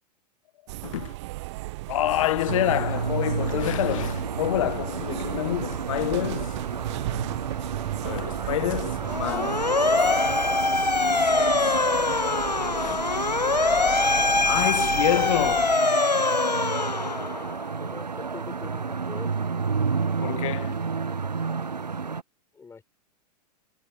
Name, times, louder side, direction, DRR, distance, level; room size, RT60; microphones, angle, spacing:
sound 1, 0.7-15.8, right 20 dB, 45° right, 0.7 m, -36 dB
voice 1, 0.8-1.1 1.9-6.5 8.0-9.6 12.8-13.0 14.4-15.8 20.2-20.8, left 14 dB, 55° left, 0.8 m, -27 dB
sound 2, 2.5-22.2, right 5 dB, 80° right, 1.0 m, -31 dB
Motor vehicle (road) / Siren, 9.0-17.6, left 3 dB, 90° left, 1.2 m, -23 dB
voice 2, 17.8-19.3 22.5-22.8, left 5 dB, 15° left, 5.0 m, -42 dB
figure-of-eight pair, 100°, 21 cm